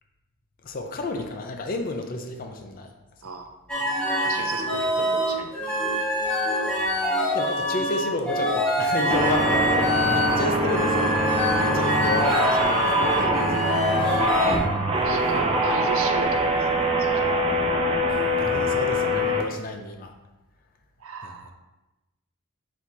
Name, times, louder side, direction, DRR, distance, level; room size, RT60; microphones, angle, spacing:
voice 1, 0.6-2.9 4.8-4.9 7.3-14.3 18.1-20.1 21.2-21.5, left 2 dB, 40° left, 4 dB, 0.4 m, -32 dB
voice 2, 3.2-3.5 4.2-5.5 6.3-6.5 10.5-10.6 11.8-12.0 15.0-17.5 21.0-21.5, right 4 dB, 80° right, 6 dB, 0.5 m, -36 dB
sound 1, 3.7-14.6, left 1 dB, 5° left, 1.1 m, -25 dB
sound 2, 9.1-19.4, right 1 dB, 25° right, 0.4 m, -23 dB
4.2 x 2.8 x 4.5 m, 1.0 s
head